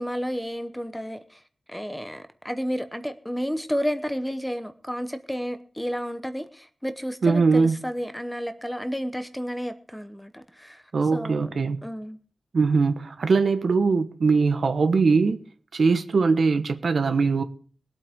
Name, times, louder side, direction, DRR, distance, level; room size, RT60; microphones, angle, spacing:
voice 1, 0.0-1.4 1.7-12.2, equal, 5° left, 0.8 m, -31 dB
voice 2, 7.2-7.8 10.9-11.8 12.5-15.4 15.7-17.4, right 4 dB, 70° right, 1.0 m, -21 dB
21.0 x 8.4 x 3.6 m
wide cardioid pair, 125°, 0 cm